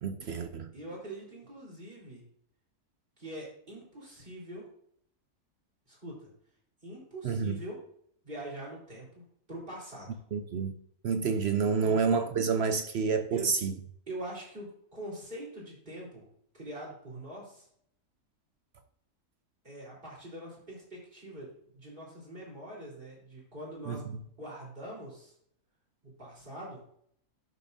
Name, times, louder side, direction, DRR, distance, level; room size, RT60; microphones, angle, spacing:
voice 1, 0.0-0.7 7.2-7.6 10.3-10.7 11.0-13.7 23.9-24.0, right 5 dB, 60° right, 0.7 m, -28 dB
voice 2, 0.7-2.2 3.2-4.7 5.9-6.3 6.8-7.8 8.2-10.2 11.8-12.0 13.3-13.5 14.1-16.2 16.5-17.7 19.6-25.3 26.0-27.0, right 1 dB, 35° right, 4.1 m, -43 dB
12.0 x 7.0 x 2.7 m
omnidirectional pair, 1.6 m